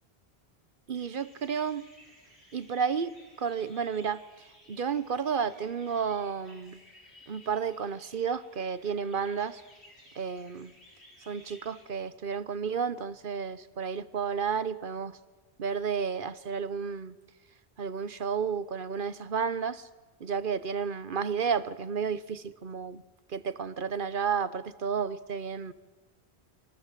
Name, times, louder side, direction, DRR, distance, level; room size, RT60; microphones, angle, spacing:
sound 1, 0.9-11.8, left 1 dB, 90° left, 6.7 m, -57 dB
voice 1, 0.9-1.9 2.5-6.8 7.3-9.6 10.2-10.7 11.3-15.2 15.6-17.1 17.8-19.9 20.2-23.0 23.3-25.7, right 6 dB, 55° right, 15 dB, 1.1 m, -32 dB
29.5 x 23.5 x 7.5 m, 1.2 s
omnidirectional pair, 1.1 m